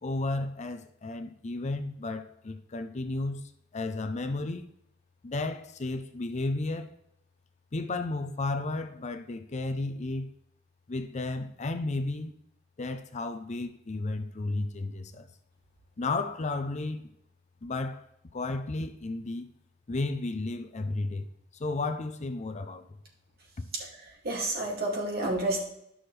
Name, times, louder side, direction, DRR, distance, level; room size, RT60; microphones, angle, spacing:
voice 1, 0.0-3.4 3.7-4.7 5.2-6.9 7.7-10.3 10.9-12.3 12.8-15.3 16.0-17.0 17.6-18.0 18.3-19.5 19.9-21.3 21.5-22.8 23.6-23.7, left 2 dB, 35° left, 0.5 m, -33 dB
voice 2, 23.7-25.6, right 2 dB, 50° right, 2.3 m, -30 dB
11.5 x 6.2 x 3.3 m
head